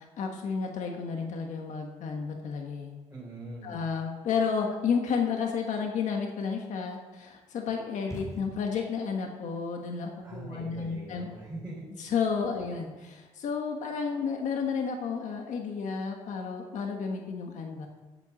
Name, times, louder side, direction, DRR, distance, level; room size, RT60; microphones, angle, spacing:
voice 1, 0.2-2.9 3.6-11.3 12.0-17.9, left 5 dB, 85° left, 2 dB, 1.4 m, -31 dB
voice 2, 3.1-3.8 10.2-11.9 12.5-12.6, right 2 dB, 10° right, -6 dB, 4.0 m, -42 dB
sound 1, 8.0-9.1, equal, 30° left, 3.5 m, -42 dB
9.2 x 8.4 x 7.1 m, 1.2 s
cardioid pair, 100°, 12 cm